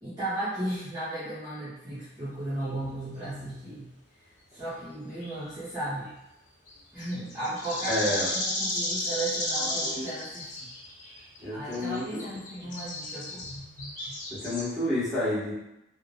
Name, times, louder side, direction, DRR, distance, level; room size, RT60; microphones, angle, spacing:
voice 1, 0.0-3.9 4.5-6.1 6.9-10.7 11.5-13.4, right 1 dB, 20° right, -13 dB, 0.8 m, -35 dB
sound 1, 2.6-2.7 5.1-6.1 6.7-11.5 11.7-14.6, left 1 dB, 45° left, 0.7 m, -34 dB
voice 2, 7.8-8.3 11.4-12.2 12.6-12.7 14.4-15.5, left 1 dB, ahead, -13 dB, 1.1 m, -29 dB
3.4 x 2.0 x 2.3 m, 0.90 s
head